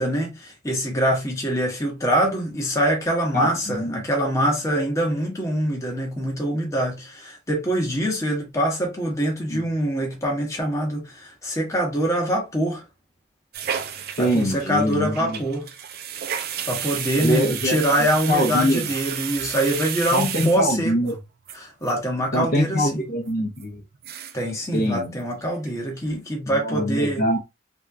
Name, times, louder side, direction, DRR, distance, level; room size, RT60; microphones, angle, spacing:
voice 1, 0.0-12.8 14.2-15.7 16.7-21.0 21.5-23.0 24.3-27.2, equal, 15° left, 1.0 m, -24 dB
voice 2, 3.3-4.0 9.5-9.6 14.2-15.4 17.2-18.9 20.1-21.1 22.3-23.8 24.7-25.1 26.5-27.4, equal, 45° left, 0.7 m, -24 dB
sound 1, 13.5-21.1 21.5-21.6 21.8-21.9 22.2-22.6 22.9-23.0 23.6-23.7 23.9-24.5 24.8-24.9 25.2-25.7 26.0-26.2, right 9 dB, 50° right, 0.4 m, -32 dB
3.5 x 2.3 x 2.6 m
head